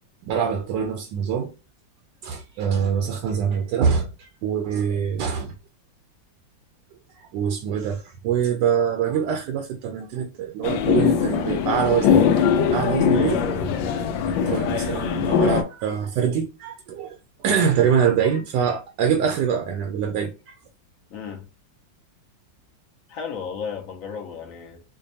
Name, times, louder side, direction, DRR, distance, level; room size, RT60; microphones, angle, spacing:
voice 1, 0.2-1.5 2.2-5.5 7.1-12.3 12.7-13.5 14.3-20.6, right 7 dB, 75° right, 1.1 m, -24 dB
sound 1, 10.6-15.6, left 7 dB, 80° left, 1.3 m, -21 dB
voice 2, 13.1-13.7 21.1-21.5 23.1-24.8, left 6 dB, 60° left, 0.9 m, -34 dB
5.1 x 2.2 x 2.6 m
omnidirectional pair, 2.1 m